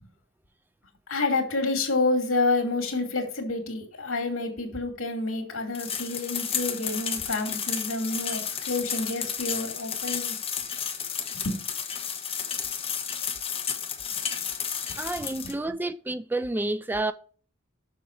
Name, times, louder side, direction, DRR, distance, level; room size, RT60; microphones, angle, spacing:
voice 1, 1.1-10.4 11.3-11.6 15.2-15.3 15.6-15.7, left 2 dB, 80° left, 2.6 m, -28 dB
sound 1, 5.7-15.5, left 7 dB, 30° left, 1.1 m, -32 dB
voice 2, 15.0-17.1, right 2 dB, 10° right, 0.3 m, -29 dB
6.9 x 6.6 x 4.5 m
head